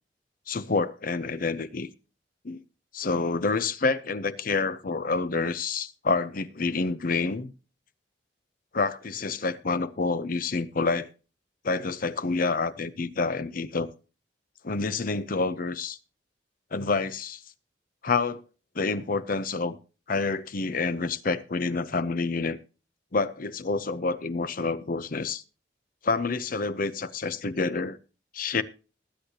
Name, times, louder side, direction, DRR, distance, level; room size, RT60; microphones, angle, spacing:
voice 1, 0.5-1.9 2.4-2.6 2.9-7.5 8.7-11.1 11.6-13.9 14.6-16.0 16.7-17.4 18.0-18.4 18.7-19.8 20.1-22.6 23.1-25.4 26.0-28.0 28.3-28.6, left 4 dB, 50° left, 0.8 m, -28 dB
21.0 x 8.4 x 2.9 m
head